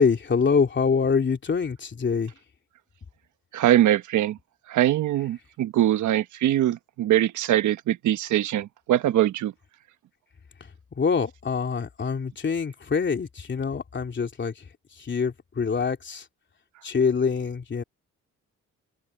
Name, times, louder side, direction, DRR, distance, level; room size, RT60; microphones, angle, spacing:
voice 1, 0.0-2.3 11.0-14.5 15.0-16.2 16.8-17.8, left 5 dB, 40° left, 3.3 m, -25 dB
voice 2, 3.5-4.4 4.7-9.5, right 13 dB, 75° right, 1.2 m, -22 dB
open air
cardioid pair, 90°, 30 cm